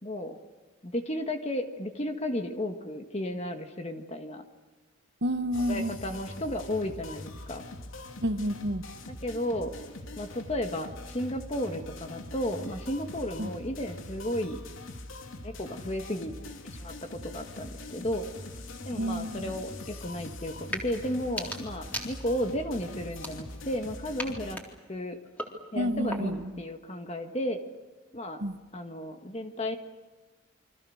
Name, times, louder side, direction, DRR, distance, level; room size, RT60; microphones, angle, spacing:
voice 1, 0.0-0.4 0.8-4.4 5.6-7.6 9.1-9.7 10.2-14.6 15.4-16.4 16.6-18.3 18.9-24.6 24.9-25.2 25.7-27.6 28.1-28.4 28.7-29.8, left 1 dB, 30° left, 5 dB, 1.7 m, -33 dB
voice 2, 5.2-5.9 8.2-8.8 13.4-13.5 19.0-19.5 25.7-26.5 28.4-28.6, equal, 60° right, 9 dB, 1.4 m, -30 dB
sound 1, 5.5-24.5, left 2 dB, 85° left, 2.7 m, -43 dB
sound 2, 20.7-20.9 21.2-22.5 23.1-23.8 24.2-26.5, equal, 10° left, 3.7 m, -40 dB
29.0 x 25.0 x 6.5 m, 1.3 s
head